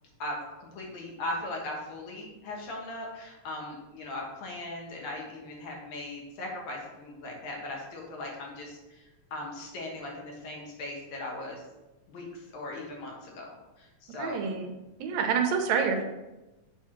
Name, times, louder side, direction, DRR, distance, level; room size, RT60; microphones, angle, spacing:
voice 1, 0.2-11.6 12.1-13.5 13.8-14.5, left 2 dB, 70° left, -1 dB, 2.7 m, -39 dB
voice 2, 14.2-14.7 15.0-16.0, right 6 dB, 75° right, 5 dB, 1.9 m, -27 dB
7.2 x 3.5 x 5.8 m, 1.0 s
omnidirectional pair, 3.5 m